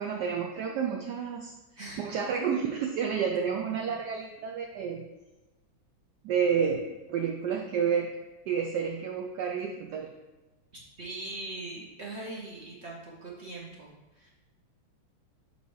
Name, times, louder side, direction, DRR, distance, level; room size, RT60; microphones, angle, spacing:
voice 1, 0.0-1.5 2.0-5.0 6.2-8.1 8.5-10.1, right 7 dB, 70° right, 2 dB, 1.0 m, -30 dB
voice 2, 10.7-14.3, right 2 dB, 45° right, -4 dB, 0.9 m, -41 dB
5.3 x 4.7 x 4.6 m, 1.1 s
omnidirectional pair, 2.2 m